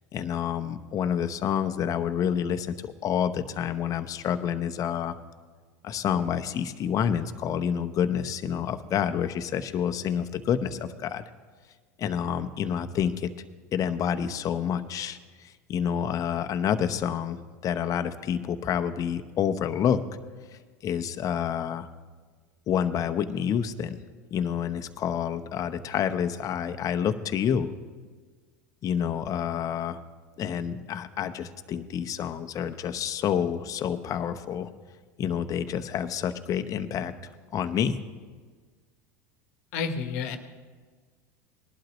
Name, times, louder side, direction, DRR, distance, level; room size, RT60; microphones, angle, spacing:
voice 1, 0.1-5.2 5.8-11.2 12.0-13.3 13.7-20.0 20.8-21.9 22.7-24.0 24.3-27.7 28.8-30.0 30.4-34.7 35.2-37.1 37.5-38.0, left 8 dB, 40° left, 9 dB, 0.8 m, -28 dB
voice 2, 39.7-40.4, left 5 dB, 70° left, 8 dB, 1.2 m, -30 dB
19.0 x 11.5 x 3.1 m, 1.5 s
hypercardioid pair, 90°, 9 cm